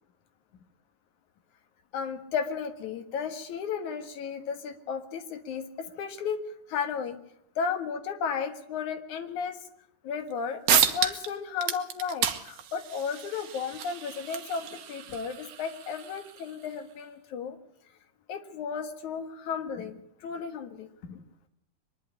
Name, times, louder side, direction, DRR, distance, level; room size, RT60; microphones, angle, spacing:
voice 1, 1.9-5.6 6.0-6.4 6.7-7.2 7.6-9.6 10.0-17.6 18.3-20.0 20.2-21.2, left 6 dB, 70° left, 8 dB, 2.9 m, -34 dB
sound 1, 10.3-10.4 10.7-11.3 11.6-16.7, right 9 dB, 60° right, 2.2 m, -30 dB
23.5 x 11.5 x 9.7 m, 0.74 s
omnidirectional pair, 3.6 m